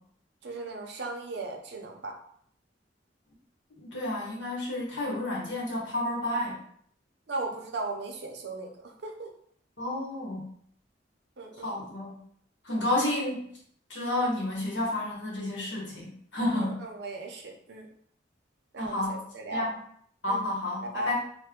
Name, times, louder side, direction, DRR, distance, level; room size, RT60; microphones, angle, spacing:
voice 1, 0.4-2.2 7.3-9.3 11.4-11.7 16.5-17.9 18.7-19.7 20.3-20.5 20.8-21.1, right 2 dB, 65° right, 2 dB, 0.6 m, -37 dB
voice 2, 3.7-6.6 9.8-10.5 11.6-12.2 12.6-13.5 13.9-16.8 18.8-19.2 19.5-19.7 20.2-21.1, left 1 dB, 80° left, -4 dB, 1.2 m, -30 dB
3.2 x 2.1 x 3.6 m, 0.64 s
head